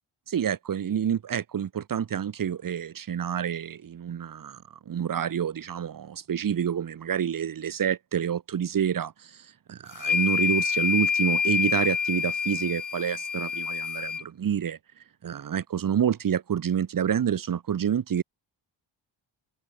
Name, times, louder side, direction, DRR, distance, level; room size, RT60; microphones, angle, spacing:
voice 1, 0.3-4.6 4.9-14.8 15.2-18.2, right 8 dB, 45° right, 1.0 m, -28 dB
sound 1, 9.9-14.2, left 6 dB, 40° left, 2.0 m, -27 dB
wide cardioid pair, 150°, 47 cm